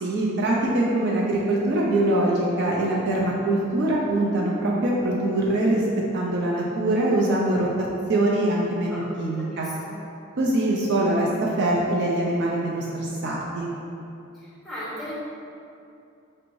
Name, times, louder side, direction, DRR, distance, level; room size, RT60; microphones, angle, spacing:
voice 1, 0.0-5.8 6.1-9.7 10.4-13.7, right 1 dB, 55° right, -3 dB, 0.4 m, -23 dB
voice 2, 2.2-2.6 8.9-9.0 9.4-10.0 14.3-15.1, equal, ahead, -9 dB, 1.2 m, -38 dB
4.3 x 3.1 x 2.6 m, 2.6 s
head